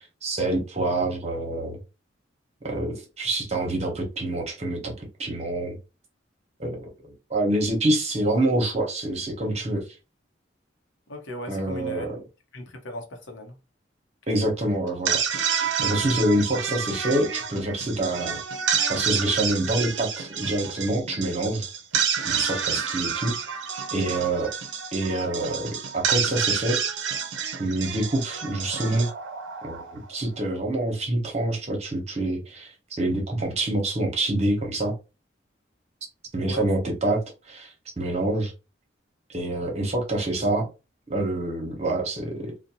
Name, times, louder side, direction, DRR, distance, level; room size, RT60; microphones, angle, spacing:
voice 1, 0.2-1.8 2.6-5.8 6.6-6.9 7.3-9.8 11.5-12.2 14.3-15.2 15.8-18.4 18.9-21.7 22.2-23.4 23.9-24.5 24.9-26.8 27.6-29.1 29.6-35.0 36.3-38.5 39.3-40.7 41.1-42.5, right 1 dB, 35° right, 0.8 m, -26 dB
voice 2, 11.1-12.2 12.5-13.6 36.4-36.7, left 1 dB, 85° left, 0.7 m, -38 dB
sound 1, 14.9-30.1, right 7 dB, 75° right, 0.5 m, -29 dB
2.5 x 2.1 x 2.8 m
head